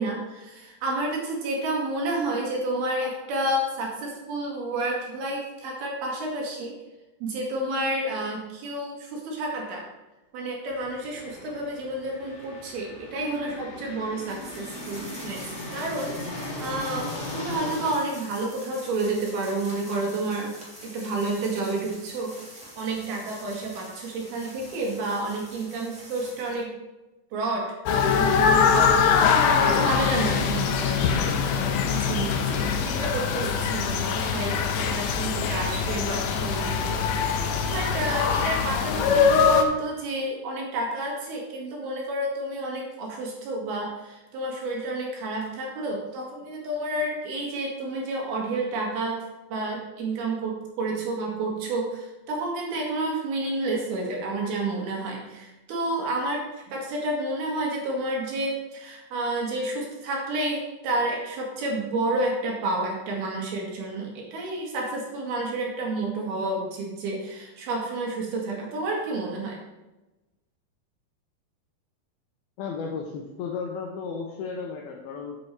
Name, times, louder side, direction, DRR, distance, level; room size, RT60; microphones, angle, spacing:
voice 1, 0.0-6.7 7.2-9.9 10.3-20.5 20.8-22.3 22.8-26.7 27.3-37.0 37.6-49.2 49.5-69.6, right 2 dB, 65° right, -1 dB, 3.6 m, -30 dB
sound 1, 10.7-17.9, left 1 dB, 45° left, 2.6 m, -38 dB
sound 2, 14.2-26.6, equal, 5° right, 1.0 m, -45 dB
sound 3, 27.9-39.6, left 6 dB, 90° left, 3.0 m, -23 dB
voice 2, 72.6-75.4, left 5 dB, 75° left, 0 dB, 2.5 m, -34 dB
9.1 x 7.6 x 4.6 m, 1.1 s
omnidirectional pair, 4.9 m